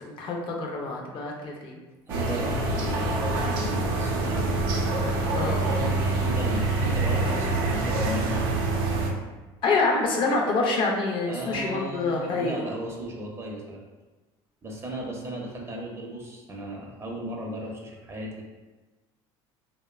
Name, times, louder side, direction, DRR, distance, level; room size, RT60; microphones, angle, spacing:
voice 1, 0.0-1.8 5.3-5.6 9.6-12.6, left 3 dB, 45° left, 0 dB, 0.4 m, -26 dB
voice 2, 2.1-4.4 5.7-8.5 11.3-13.8 14.6-18.4, right 1 dB, 20° right, -1 dB, 0.5 m, -36 dB
sound 1, 2.1-9.1, right 2 dB, 85° right, 0.4 m, -26 dB
2.6 x 2.0 x 2.3 m, 1.2 s
supercardioid pair, 105°, 12 cm